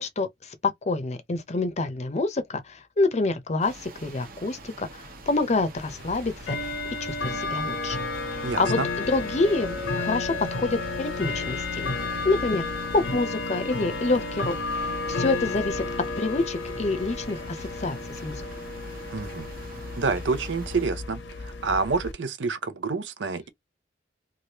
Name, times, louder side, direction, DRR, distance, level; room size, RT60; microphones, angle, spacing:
voice 1, 0.0-12.7 12.9-15.9 16.2-18.4, left 3 dB, 40° left, 0.7 m, -27 dB
sound 1, 3.6-20.9, right 3 dB, 55° right, 1.0 m, -46 dB
Bell / Tick-tock, 5.8-22.1, left 3 dB, 75° left, 0.8 m, -32 dB
voice 2, 8.4-8.9 19.1-19.5 20.0-23.5, right 4 dB, 80° right, 0.6 m, -28 dB
Chink clink, 9.4-13.7, left 1 dB, 20° right, 0.4 m, -42 dB
3.3 x 2.5 x 2.9 m
head